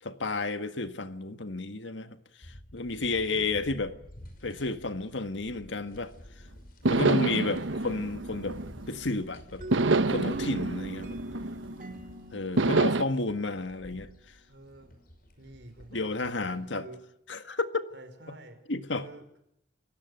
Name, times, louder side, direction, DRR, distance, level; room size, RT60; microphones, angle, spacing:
voice 1, 0.0-3.9 4.4-6.4 6.9-8.6 8.9-9.6 10.1-11.2 12.3-14.4 15.9-16.9 17.3-17.9 18.7-19.1, left 3 dB, 80° left, 9 dB, 1.8 m, -32 dB
sound 1, 2.4-16.6, equal, 50° left, 5.7 m, -50 dB
voice 2, 6.9-7.8 14.5-14.9 15.4-17.0 17.9-18.6 19.0-19.4, right 1 dB, 65° right, 6 dB, 5.0 m, -48 dB
sound 2, 6.9-9.1 9.7-12.0 12.6-13.0, right 3 dB, 85° right, 1.1 m, -27 dB
sound 3, 9.6-14.3, right 2 dB, 45° right, 2.2 m, -41 dB
29.5 x 16.5 x 8.0 m, 0.80 s
head